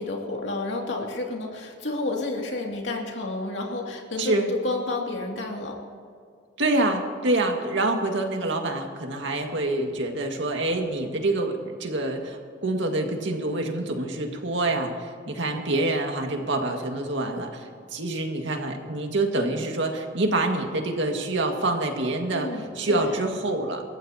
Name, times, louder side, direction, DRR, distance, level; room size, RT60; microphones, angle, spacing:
voice 1, 0.0-5.8 22.3-23.2, left 2 dB, 80° left, 0 dB, 2.5 m, -31 dB
voice 2, 4.2-4.5 6.6-22.5 22.8-23.8, right 2 dB, 90° right, 2 dB, 2.0 m, -26 dB
27.5 x 14.5 x 2.9 m, 2.2 s
head